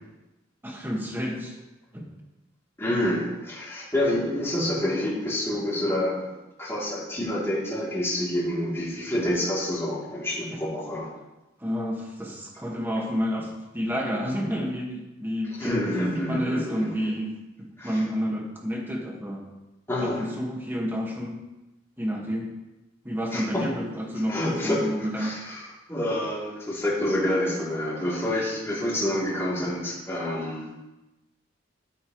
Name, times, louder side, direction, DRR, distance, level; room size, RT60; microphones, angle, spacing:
voice 1, 0.6-1.6 1.9-2.1 10.5-10.6 11.6-17.3 17.6-19.4 20.0-21.4 22.0-22.5 23.0-25.3, equal, 10° right, -1 dB, 1.8 m, -30 dB
voice 2, 2.8-6.2 6.6-11.1 15.6-16.9 17.8-18.0 19.9-20.3 23.3-23.7 24.3-24.9 25.1-30.7, left 1 dB, 15° left, -7 dB, 3.2 m, -28 dB
12.5 x 8.8 x 3.2 m, 1.0 s
head